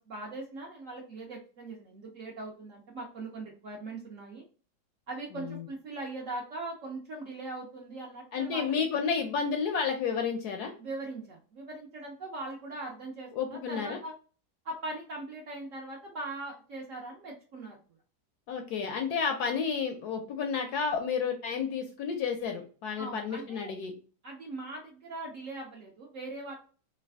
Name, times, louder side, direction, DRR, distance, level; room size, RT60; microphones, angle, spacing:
voice 1, 0.1-4.4 5.1-8.7 10.8-14.1 14.6-17.8 23.0-23.7 24.2-26.6, right 2 dB, 60° right, -1 dB, 0.8 m, -40 dB
voice 2, 5.3-5.6 8.3-10.7 13.4-14.0 18.5-23.9, left 6 dB, 70° left, 4 dB, 1.0 m, -31 dB
3.2 x 2.2 x 3.3 m, 0.38 s
omnidirectional pair, 2.0 m